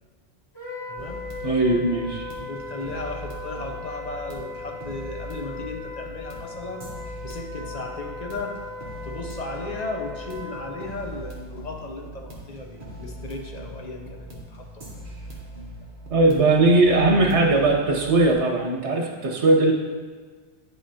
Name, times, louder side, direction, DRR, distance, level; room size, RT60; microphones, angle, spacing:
Wind instrument woodwind instrument, 0.5-11.0, left 3 dB, 20° left, 1.8 m, -38 dB
voice 1, 0.9-1.2 2.4-6.9 7.2-8.6 9.0-14.9, left 2 dB, 40° left, 2 dB, 0.8 m, -35 dB
sound 1, 1.0-18.3, right 1 dB, 50° right, 1.3 m, -41 dB
voice 2, 1.4-2.3 16.1-19.7, right 2 dB, 80° right, 0 dB, 1.4 m, -19 dB
9.3 x 5.8 x 2.9 m, 1.4 s
omnidirectional pair, 1.2 m